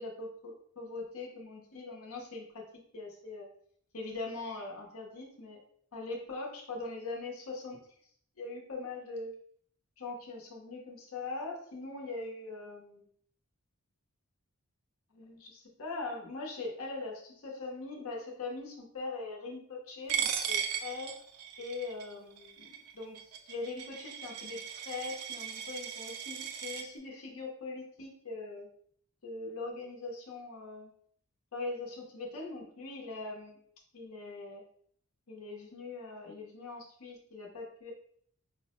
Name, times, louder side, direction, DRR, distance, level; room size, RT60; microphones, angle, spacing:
voice 1, 0.0-2.6 2.9-3.5 3.9-5.6 5.9-7.8 8.4-9.4 10.0-13.1 15.1-21.2 21.6-28.7 29.2-30.9 31.5-33.6 33.9-34.6 35.3-37.9, left 3 dB, 70° left, -1 dB, 0.8 m, -41 dB
Coin (dropping), 20.1-26.8, right 8 dB, 85° right, 0.4 m, -37 dB
4.5 x 2.0 x 2.9 m, 0.62 s
head